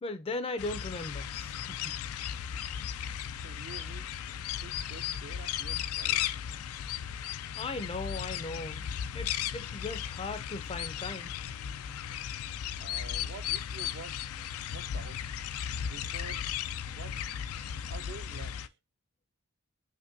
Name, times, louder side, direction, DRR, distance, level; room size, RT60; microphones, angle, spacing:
voice 1, 0.0-2.0 7.6-11.3, left 3 dB, 25° left, 0.4 m, -38 dB
sound 1, 0.6-18.7, left 9 dB, 90° left, 0.3 m, -36 dB
voice 2, 3.4-4.1 4.6-6.2 12.8-14.2 14.7-15.2 15.9-16.4 17.0-17.1 17.9-18.7, right 5 dB, 55° right, 0.4 m, -48 dB
5.2 x 2.2 x 2.5 m
head